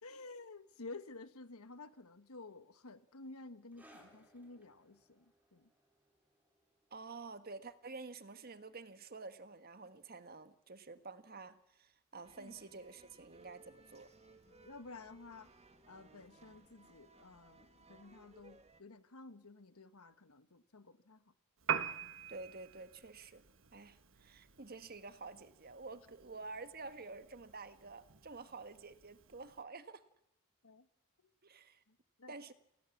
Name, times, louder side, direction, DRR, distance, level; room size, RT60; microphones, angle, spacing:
voice 1, 0.0-5.7 12.4-12.5 14.5-15.5 15.9-21.2 30.6-30.9 31.9-32.4, left 3 dB, 85° left, 12 dB, 1.5 m, -53 dB
sound 1, 3.7-10.7 11.0-11.2 11.9-12.0, right 1 dB, 10° right, 4.7 m, -68 dB
voice 2, 6.9-14.1 22.3-23.4 23.7-30.0 31.4-31.8 32.3-32.5, right 3 dB, 45° right, 11 dB, 1.5 m, -50 dB
sound 2, 12.2-18.8, right 3 dB, 30° right, 1.9 m, -62 dB
Piano, 21.6-29.6, right 7 dB, 60° right, 1.4 m, -45 dB
28.5 x 19.0 x 7.2 m, 0.83 s
head